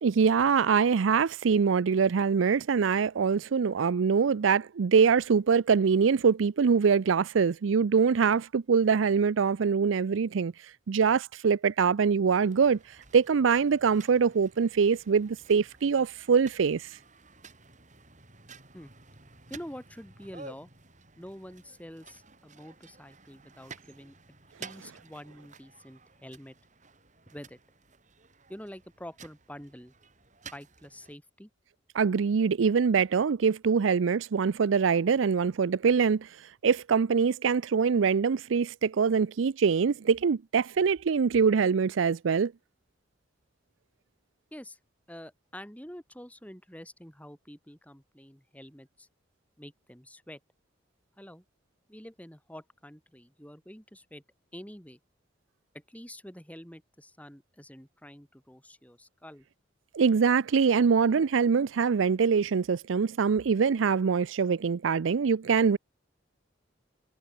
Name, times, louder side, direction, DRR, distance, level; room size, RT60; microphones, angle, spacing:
voice 1, 0.0-17.0 31.9-42.5 59.9-65.8, right 6 dB, 80° right, 0.5 m, -24 dB
sound 1, 12.3-31.2, right 4 dB, 40° right, 7.0 m, -52 dB
voice 2, 19.5-20.7 21.2-24.2 24.6-26.6 27.3-27.6 28.5-29.9 30.5-31.5 44.5-44.8 45.1-49.1 49.6-50.4 51.2-51.4 51.9-54.2 54.5-55.0 55.7-59.4, equal, 10° left, 7.5 m, -47 dB
head